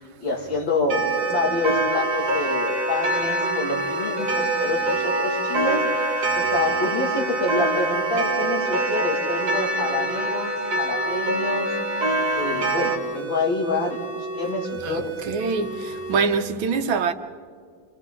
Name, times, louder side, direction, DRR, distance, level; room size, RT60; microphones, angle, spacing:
voice 1, 0.2-5.9 6.3-11.8 12.3-15.2, left 3 dB, 70° left, 3.0 m, -27 dB
sound 1, 0.9-16.4, right 1 dB, 25° right, 3.8 m, -32 dB
Clock, 0.9-13.0, right 2 dB, 55° right, 2.1 m, -25 dB
voice 2, 6.3-6.7 12.2-12.7 14.8-17.1, right 5 dB, 80° right, 1.7 m, -27 dB
30.0 x 26.0 x 3.8 m
omnidirectional pair, 2.1 m